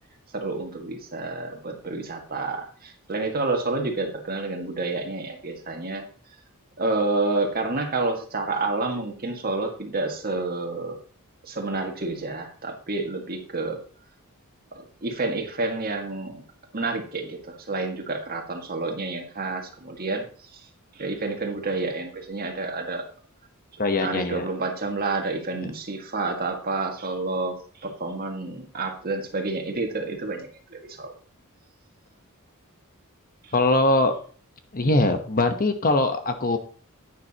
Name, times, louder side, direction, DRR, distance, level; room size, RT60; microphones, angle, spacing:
voice 1, 0.3-6.1 6.8-11.0 11.5-13.8 14.7-16.4 16.7-20.3 21.0-23.1 23.9-31.1 33.4-33.5, right 3 dB, 45° right, 3 dB, 1.9 m, -29 dB
voice 2, 23.8-24.4 25.5-25.7 33.5-34.1 34.7-36.6, left 2 dB, 40° left, 7 dB, 1.1 m, -22 dB
10.5 x 9.5 x 2.9 m, 0.42 s
head